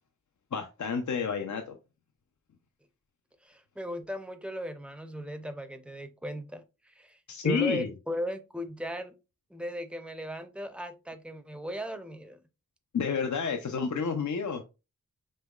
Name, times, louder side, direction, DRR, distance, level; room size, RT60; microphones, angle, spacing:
voice 1, 0.5-1.8 7.3-7.9 12.9-14.6, left 6 dB, 65° left, 0.5 m, -30 dB
voice 2, 3.4-9.2 9.5-12.4, equal, 5° right, 0.5 m, -37 dB
5.3 x 3.0 x 2.3 m
wide cardioid pair, 55°, 33 cm